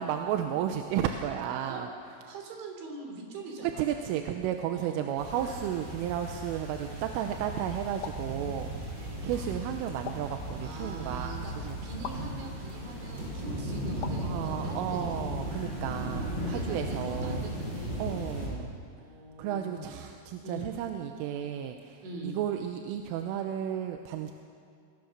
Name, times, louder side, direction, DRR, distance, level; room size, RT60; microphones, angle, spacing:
voice 1, 0.0-1.9 3.8-11.3 11.6-11.7 14.2-17.4 18.0-18.7 19.4-24.3, right 10 dB, 85° right, 5 dB, 3.5 m, -33 dB
voice 2, 2.3-3.9 4.7-5.0 8.9-9.3 10.6-15.4 16.2-18.0 19.0-19.9 20.4-20.7 22.0-22.4, right 2 dB, 70° right, 2 dB, 5.7 m, -43 dB
sound 1, 5.2-18.5, right 1 dB, 20° right, 7.1 m, -36 dB
sound 2, 8.0-8.3 10.1-10.4 12.0-12.3 14.0-14.3, left 7 dB, 85° left, 1.7 m, -40 dB
26.5 x 21.0 x 6.6 m, 2.3 s
omnidirectional pair, 5.6 m